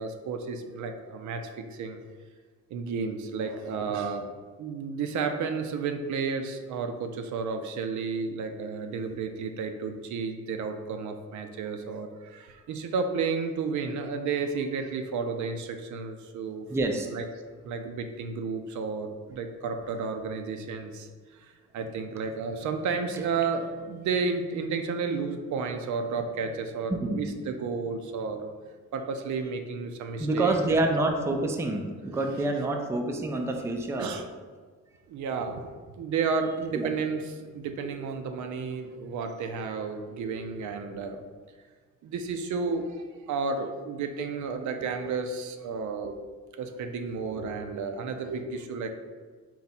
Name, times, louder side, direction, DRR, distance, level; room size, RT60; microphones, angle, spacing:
voice 1, 0.0-2.0 2.7-4.3 4.6-16.7 17.1-17.2 17.6-21.5 21.7-28.5 28.9-30.9 34.0-34.3 35.1-35.7 36.0-41.2 42.0-46.2 46.6-48.9, right 5 dB, 70° right, 6 dB, 0.5 m, -32 dB
voice 2, 16.7-17.1 27.0-27.3 30.2-34.1 36.7-36.9 37.8-37.9, right 2 dB, 10° right, 3 dB, 0.4 m, -27 dB
4.1 x 2.3 x 4.1 m, 1.5 s
cardioid pair, 90°, 31 cm